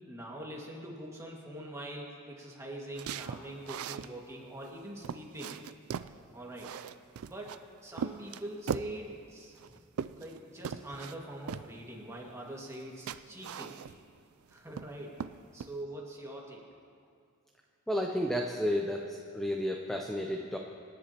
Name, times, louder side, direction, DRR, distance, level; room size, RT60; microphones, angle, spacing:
voice 1, 0.1-5.6 6.3-6.7 7.2-7.5 7.8-9.6 10.1-13.7 14.5-15.2 15.5-16.7, right 1 dB, 15° right, -2 dB, 1.8 m, -43 dB
sound 1, 3.0-4.1 4.6-4.7 5.0-6.1 6.6-7.6 8.0-9.0 9.6-10.4 10.6-11.1 11.5-11.7 12.7-12.8 13.1-14.1 14.5-14.9 15.2-15.7, right 7 dB, 90° right, 0.4 m, -39 dB
voice 2, 17.9-20.6, equal, ahead, 1 dB, 0.6 m, -32 dB
26.5 x 10.5 x 2.9 m, 2.3 s
head